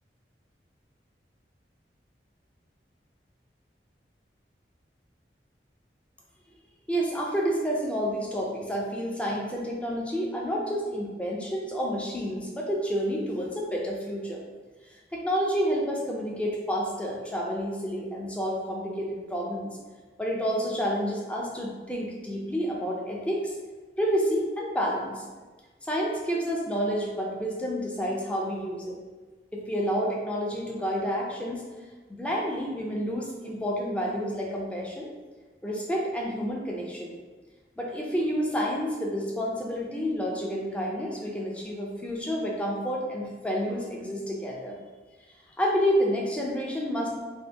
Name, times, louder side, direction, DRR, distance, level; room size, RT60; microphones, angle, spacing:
voice 1, 6.9-14.4 15.1-19.8 20.2-23.6 24.0-25.2 25.8-29.0 29.5-31.6 32.1-35.1 35.6-37.2 37.8-44.8 45.6-47.1, equal, 5° left, -3 dB, 0.4 m, -29 dB
2.7 x 2.5 x 3.3 m, 1.3 s
head